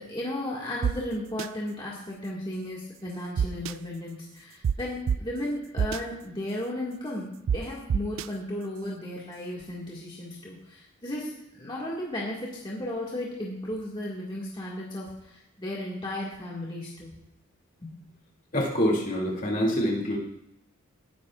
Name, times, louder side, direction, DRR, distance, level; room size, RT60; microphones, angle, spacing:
voice 1, 0.0-17.2 17.8-17.9, left 1 dB, 20° left, -5 dB, 1.9 m, -35 dB
sound 1, 0.8-0.9 1.4-1.5 3.4-3.7 4.6-4.7 5.1-5.2 5.8-6.0 7.5-7.6 7.9-8.3, right 7 dB, 60° right, 0.3 m, -25 dB
voice 2, 18.5-20.2, equal, 35° left, -2 dB, 2.6 m, -25 dB
19.0 x 10.5 x 2.5 m, 0.81 s
head